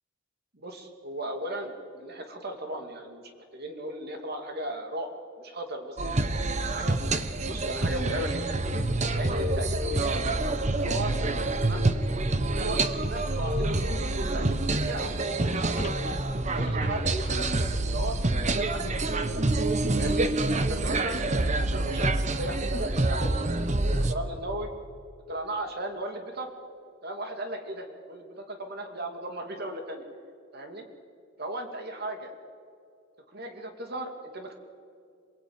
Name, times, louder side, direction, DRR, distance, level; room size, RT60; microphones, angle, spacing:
voice 1, 0.5-5.1 5.4-6.0 6.6-7.1 7.4-8.6 9.1-11.1 11.6-11.9 12.5-16.0 16.5-18.1 18.5-19.5 19.9-20.2 20.7-24.7 25.3-26.5 27.0-30.1 30.5-30.9 31.4-32.3 33.3-34.5, right 1 dB, 50° right, 4 dB, 2.8 m, -36 dB
sound 1, 6.0-24.1, right 2 dB, 35° right, 1.1 m, -27 dB
sound 2, 15.8-19.1 19.6-19.7, left 2 dB, 35° left, 0.6 m, -42 dB
27.5 x 20.0 x 9.0 m, 2.4 s
head